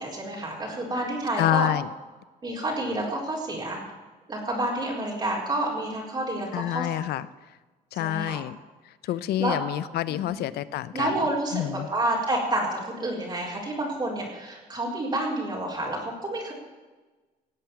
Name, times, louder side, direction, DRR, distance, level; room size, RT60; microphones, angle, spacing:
voice 1, 0.0-1.7 2.4-3.8 4.3-6.9 8.0-8.4 9.4-9.6 10.2-10.4 10.9-16.5, right 1 dB, 25° right, -3 dB, 4.6 m, -29 dB
voice 2, 1.4-1.9 6.5-7.3 7.9-8.6 9.1-11.1 11.5-11.9, left 13 dB, 70° left, 16 dB, 0.7 m, -27 dB
17.5 x 8.2 x 7.3 m, 1.2 s
cardioid pair, 110°, 17 cm